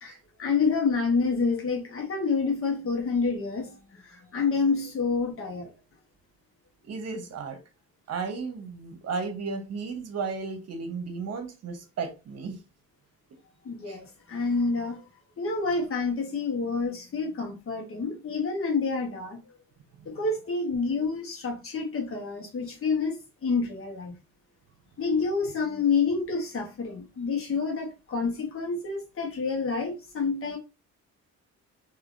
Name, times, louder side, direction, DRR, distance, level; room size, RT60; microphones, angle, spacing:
voice 1, 0.4-3.8 4.0-5.7 13.6-15.0 15.4-19.4 20.0-24.2 25.0-30.6, left 4 dB, 45° left, 1.1 m, -28 dB
voice 2, 6.8-7.6 8.1-12.6 13.9-14.0 20.1-20.2, right 4 dB, 55° right, 0.9 m, -34 dB
3.5 x 2.6 x 2.5 m
cardioid pair, 90°, 30 cm